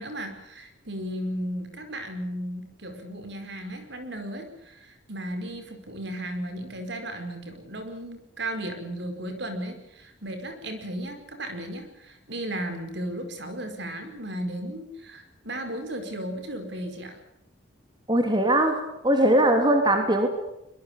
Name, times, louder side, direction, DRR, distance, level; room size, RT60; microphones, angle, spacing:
voice 1, 0.0-17.2, right 1 dB, 60° right, 7 dB, 5.1 m, -35 dB
voice 2, 18.1-18.8 19.0-20.3, right 1 dB, 20° right, 4 dB, 3.3 m, -20 dB
23.5 x 23.0 x 8.7 m, 0.83 s
head